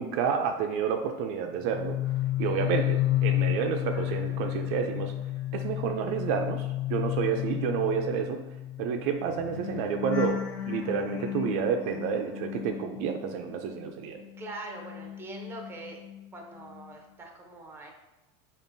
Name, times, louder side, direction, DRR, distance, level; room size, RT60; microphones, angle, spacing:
voice 1, 0.0-2.0 2.4-5.1 5.5-8.4 8.8-14.2, right 7 dB, 65° right, 5 dB, 0.4 m, -30 dB
sound 1, 1.6-13.9 14.2-16.3 16.6-16.9, left 14 dB, 90° left, 0.7 m, -32 dB
voice 2, 2.6-2.9 7.4-7.5 14.4-16.0 16.3-17.9, right 2 dB, 15° right, 1 dB, 0.6 m, -43 dB
5.3 x 2.5 x 2.6 m, 1.0 s
supercardioid pair, 140°, 15 cm